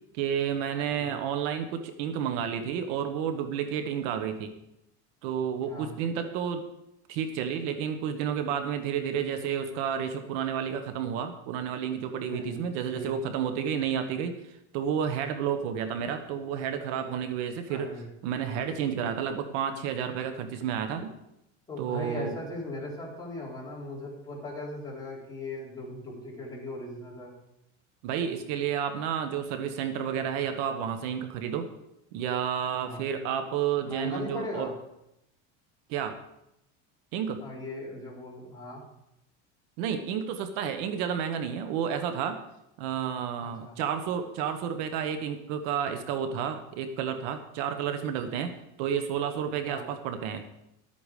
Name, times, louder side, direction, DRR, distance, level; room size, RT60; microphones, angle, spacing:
voice 1, 0.1-4.5 5.2-6.7 7.1-17.9 18.2-21.1 21.8-22.4 28.0-31.7 32.1-34.7 35.9-36.2 37.1-37.4 39.8-42.4 42.8-50.4, right 8 dB, 70° right, 8 dB, 1.3 m, -31 dB
voice 2, 12.1-13.1 17.7-18.1 21.7-27.3 32.8-33.1 33.8-34.7 37.4-38.8 43.4-43.8 49.7-49.9, left 1 dB, 10° left, -5 dB, 4.0 m, -39 dB
12.5 x 8.6 x 5.0 m, 0.83 s
supercardioid pair, 145°, 36 cm